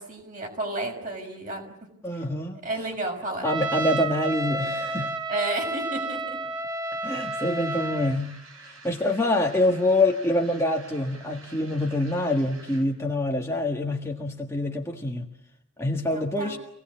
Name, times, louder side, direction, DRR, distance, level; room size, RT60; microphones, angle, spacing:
voice 1, 0.0-1.7 2.1-2.2 2.6-3.5 5.3-6.4 16.1-16.6, right 2 dB, 40° right, 2 dB, 6.5 m, -32 dB
voice 2, 2.0-2.6 3.4-5.1 7.0-8.4 8.6-15.3 15.8-16.6, left 1 dB, 15° left, 1 dB, 1.6 m, -25 dB
Trumpet, 3.4-8.2, right 2 dB, 20° right, 1.4 m, -31 dB
sound 1, 7.2-13.0, right 3 dB, 85° right, 6.8 m, -49 dB
26.5 x 18.5 x 8.7 m, 0.79 s
head